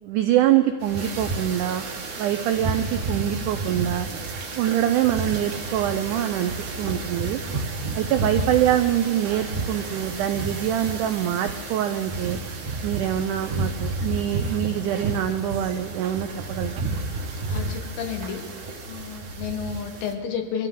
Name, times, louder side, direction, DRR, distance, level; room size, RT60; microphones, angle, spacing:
voice 1, 0.0-1.9 2.2-4.1 4.6-7.4 8.0-12.4 12.8-16.9, right 11 dB, 90° right, 8 dB, 1.7 m, -24 dB
sound 1, 0.8-20.1, right 3 dB, 55° right, 1.5 m, -31 dB
sound 2, 6.0-17.6, right 7 dB, 70° right, 2.4 m, -45 dB
voice 2, 17.5-18.4 18.9-20.7, left 7 dB, 80° left, 4 dB, 3.3 m, -31 dB
24.5 x 15.0 x 3.8 m, 2.1 s
omnidirectional pair, 4.3 m